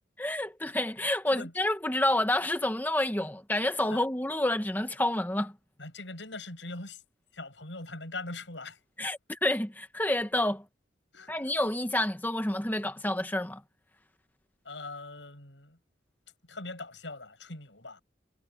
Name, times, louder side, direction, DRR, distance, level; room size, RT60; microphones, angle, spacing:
voice 1, 0.2-5.5 9.0-10.6 11.3-13.6, left 1 dB, 10° left, 1.0 m, -29 dB
voice 2, 5.8-7.0 7.3-8.8 11.1-11.4 14.6-15.8 16.5-18.0, left 2 dB, 85° left, 7.5 m, -41 dB
head